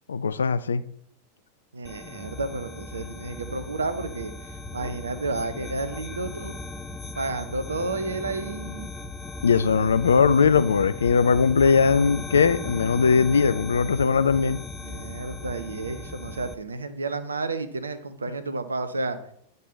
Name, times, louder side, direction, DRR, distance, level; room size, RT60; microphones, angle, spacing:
voice 1, 0.1-0.8 9.4-14.6, left 5 dB, 70° left, 0.4 m, -20 dB
voice 2, 1.7-6.5 7.2-8.9 14.8-19.2, right 3 dB, 75° right, 0.8 m, -31 dB
sound 1, 1.8-16.5, left 3 dB, 10° left, 0.6 m, -38 dB
9.3 x 5.4 x 4.0 m
figure-of-eight pair, 90°, 0 cm